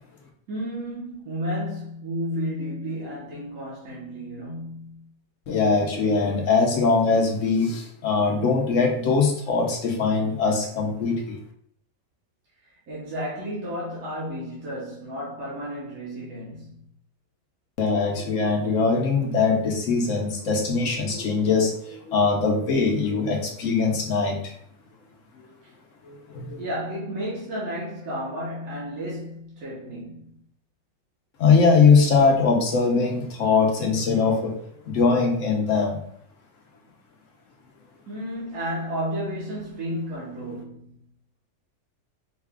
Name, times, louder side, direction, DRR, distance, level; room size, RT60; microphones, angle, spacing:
voice 1, 0.5-5.1 12.9-16.8 26.5-30.4 38.1-41.0, equal, 70° right, 1.6 m, -32 dB
voice 2, 5.5-11.4 17.8-24.5 26.0-26.6 31.4-34.5 34.9-36.0, left 4 dB, 65° left, 1.0 m, -21 dB
4.7 x 2.3 x 3.5 m
omnidirectional pair, 1.6 m